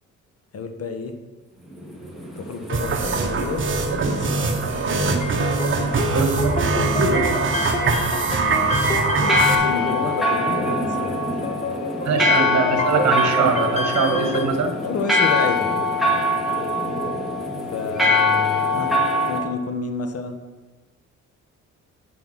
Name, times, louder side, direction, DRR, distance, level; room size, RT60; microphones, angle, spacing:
voice 1, 0.5-1.1 2.4-3.6 4.0-5.1 5.8-6.2 8.4-11.2 14.8-15.7 17.7-18.9 19.3-20.4, left 4 dB, 55° left, 7 dB, 1.2 m, -30 dB
sound 1, 1.7-19.4, left 2 dB, ahead, 2.3 m, -24 dB
sound 2, 2.7-9.6, right 4 dB, 40° right, 1.3 m, -22 dB
sound 3, 4.9-14.5, left 3 dB, 25° left, 1.0 m, -29 dB
voice 2, 6.0-7.4 12.0-14.7, right 4 dB, 60° right, 5 dB, 1.6 m, -23 dB
9.3 x 5.7 x 6.1 m, 1.2 s
cardioid pair, 90°, 30 cm